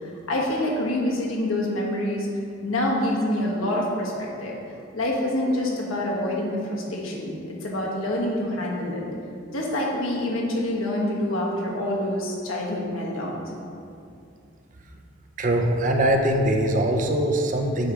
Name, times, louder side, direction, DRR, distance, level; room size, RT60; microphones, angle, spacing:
voice 1, 0.3-2.3 2.6-4.6 4.9-9.0 9.5-13.4, left 1 dB, 85° left, -3 dB, 1.3 m, -26 dB
voice 2, 15.4-17.9, right 1 dB, 40° right, 3 dB, 0.5 m, -22 dB
7.8 x 3.4 x 4.9 m, 2.5 s
head